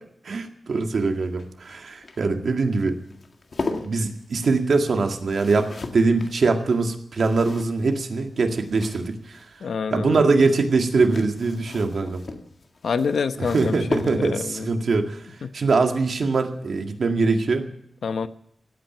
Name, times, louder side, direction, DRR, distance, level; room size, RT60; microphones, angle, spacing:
voice 1, 0.2-3.0 3.8-9.4 9.9-12.2 13.4-15.2 15.5-17.7, right 3 dB, 65° right, 4 dB, 2.0 m, -22 dB
sound 1, 0.7-9.5 10.7-14.6 16.2-16.5 16.8-16.9, left 3 dB, 55° left, 1.9 m, -37 dB
voice 2, 9.6-10.2 12.8-14.7 15.4-15.5 18.0-18.3, left 5 dB, 85° left, 11 dB, 0.9 m, -27 dB
16.5 x 9.1 x 9.2 m, 0.72 s
wide cardioid pair, 115°, 0 cm